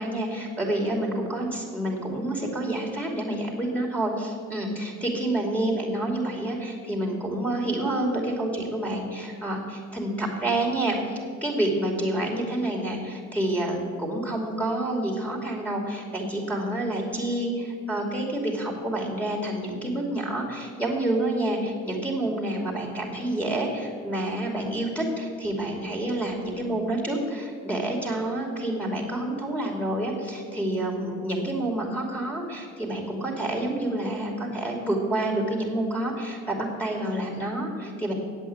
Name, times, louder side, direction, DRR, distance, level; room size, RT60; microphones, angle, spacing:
voice 1, 0.0-38.1, right 1 dB, 5° left, -3 dB, 2.8 m, -28 dB
8.4 x 8.1 x 8.8 m, 2.1 s
cardioid pair, 90°, 30 cm